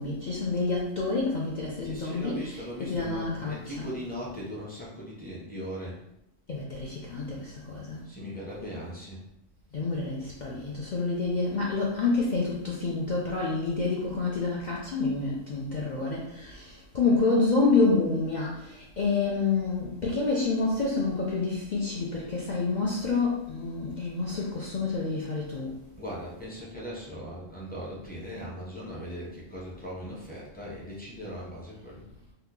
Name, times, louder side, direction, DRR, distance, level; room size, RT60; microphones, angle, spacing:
voice 1, 0.0-3.9 6.5-8.0 9.7-25.8, left 3 dB, 65° left, -4 dB, 0.4 m, -28 dB
voice 2, 1.8-6.0 8.0-9.2 26.0-32.1, equal, 10° left, -6 dB, 0.5 m, -39 dB
2.9 x 2.3 x 3.6 m, 0.81 s
omnidirectional pair, 1.3 m